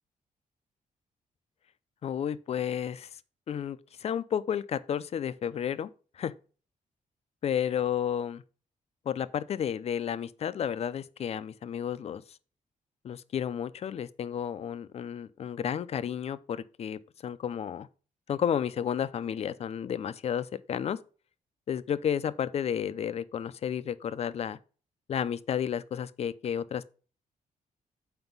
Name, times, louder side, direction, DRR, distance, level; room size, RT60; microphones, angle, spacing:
voice 1, 2.0-3.2 3.5-5.9 6.2-6.3 7.4-8.4 9.1-12.2 13.0-17.9 18.3-21.0 21.7-24.6 25.1-26.9, left 8 dB, 45° left, 0.5 m, -32 dB
8.0 x 4.8 x 5.4 m
wide cardioid pair, 175°, 14 cm